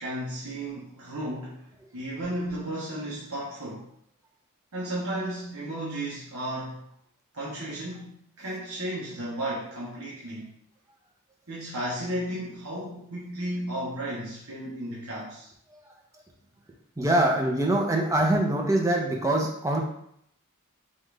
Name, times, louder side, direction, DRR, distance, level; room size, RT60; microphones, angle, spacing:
voice 1, 0.0-3.8 4.7-6.8 7.3-10.5 11.5-15.5, right 1 dB, 70° right, -6 dB, 1.1 m, -34 dB
voice 2, 17.0-19.8, right 1 dB, 15° right, -1 dB, 0.8 m, -24 dB
5.3 x 2.6 x 3.3 m, 0.70 s
head